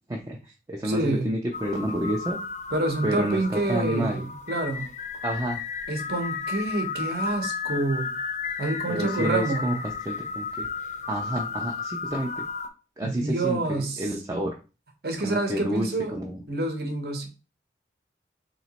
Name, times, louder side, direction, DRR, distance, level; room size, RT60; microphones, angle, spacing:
voice 1, 0.1-2.4 3.0-4.2 5.2-5.6 8.9-9.7 10.0-10.7 11.1-12.4 13.0-14.5 15.2-16.4, right 1 dB, 20° right, 0 dB, 0.4 m, -29 dB
voice 2, 0.8-1.3 2.7-4.9 5.9-8.1 8.6-9.7 13.0-14.0 15.0-16.1 16.5-17.3, right 2 dB, 60° right, 3 dB, 0.9 m, -27 dB
sound 1, 1.5-12.7, left 5 dB, 40° left, 0.5 m, -33 dB
3.0 x 2.9 x 4.1 m, 0.32 s
head